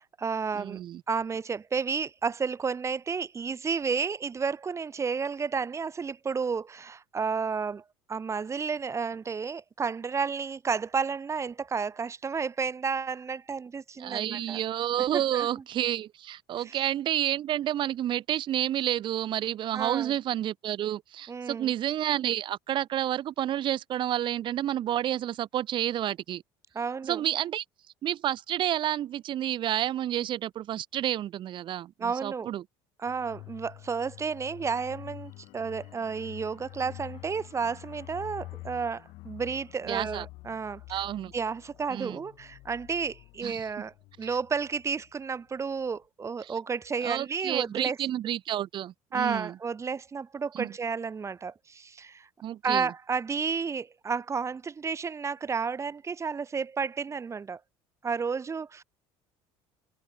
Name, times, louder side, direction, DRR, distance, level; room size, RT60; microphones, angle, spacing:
voice 1, 0.0-0.8 1.1-7.8 8.1-14.6 15.1-15.6 16.6-16.8 19.7-20.1 21.3-21.7 26.8-27.2 32.0-32.5 33.0-41.0 41.3-48.0 49.1-52.3 52.6-57.6 58.0-58.8, right 5 dB, 25° right, 3.6 m, -32 dB
voice 2, 0.5-1.0 14.0-26.4 27.0-27.6 28.0-32.6 39.9-40.2 40.9-41.3 41.9-42.2 43.4-43.7 46.4-46.5 47.0-49.6 50.5-50.7 52.4-52.9, right 12 dB, 50° right, 1.0 m, -30 dB
sound 1, 33.1-45.4 45.7-45.9, left 21 dB, 70° left, 4.5 m, -47 dB
supercardioid pair, 110°, 11 cm